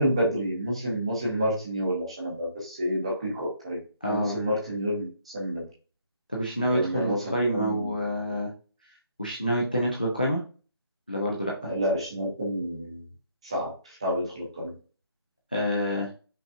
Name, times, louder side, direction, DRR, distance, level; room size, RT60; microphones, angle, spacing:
voice 1, 0.0-5.7 6.7-7.9 11.6-13.0 13.4-14.8, equal, 15° right, -5 dB, 0.7 m, -29 dB
voice 2, 4.0-4.4 6.3-8.5 9.2-10.4 11.1-11.7 15.5-16.1, equal, 20° left, -2 dB, 0.4 m, -27 dB
5.3 x 2.2 x 2.6 m, 0.37 s
figure-of-eight pair, 170°, 14 cm